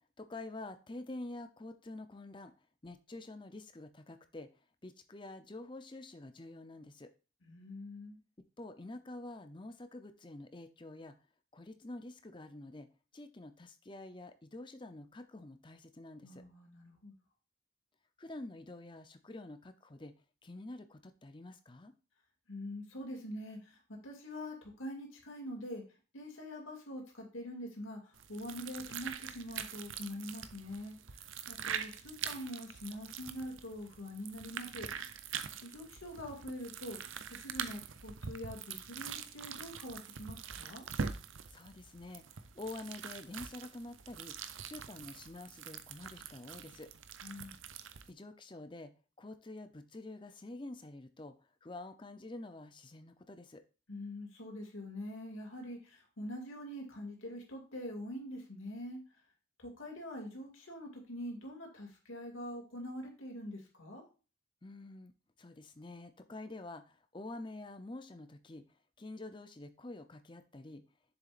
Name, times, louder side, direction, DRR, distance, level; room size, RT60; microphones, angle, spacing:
voice 1, 0.2-2.5 2.8-4.5 4.8-7.1 8.6-11.1 11.5-12.9 13.1-16.4 18.2-20.1 20.4-21.9 41.5-44.4 44.6-46.9 48.1-48.9 49.2-51.3 51.6-53.6 64.6-65.1 65.4-68.6 69.0-70.8, left 2 dB, 25° left, 9 dB, 0.6 m, -47 dB
voice 2, 7.4-8.2 16.2-17.1 22.5-25.8 26.1-31.0 31.5-34.9 35.6-37.0 37.3-40.8 47.2-47.6 53.9-59.0 59.6-64.0, left 1 dB, 90° left, 1 dB, 2.5 m, -44 dB
sound 1, 28.1-48.1, right 7 dB, 80° right, 0.6 m, -44 dB
7.1 x 6.9 x 2.5 m, 0.33 s
head